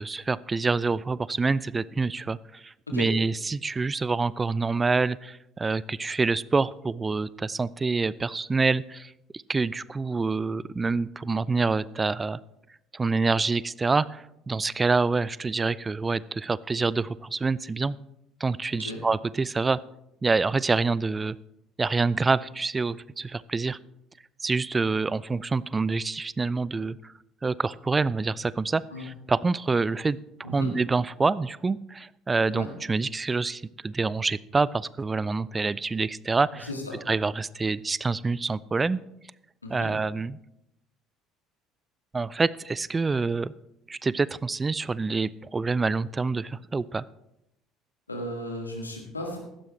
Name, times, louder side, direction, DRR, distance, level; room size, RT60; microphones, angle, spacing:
voice 1, 0.0-12.4 12.9-18.0 18.4-19.8 20.2-21.4 21.8-23.8 24.4-27.1 27.4-36.7 37.1-39.0 39.7-40.4 42.1-43.5 43.9-47.0, right 4 dB, 20° right, 21 dB, 0.4 m, -26 dB
voice 2, 30.4-30.7 32.5-32.7 36.6-37.0 39.6-39.9 48.1-49.4, left 1 dB, 90° left, 2 dB, 1.9 m, -35 dB
15.0 x 12.0 x 3.2 m, 0.84 s
figure-of-eight pair, 55°, 0 cm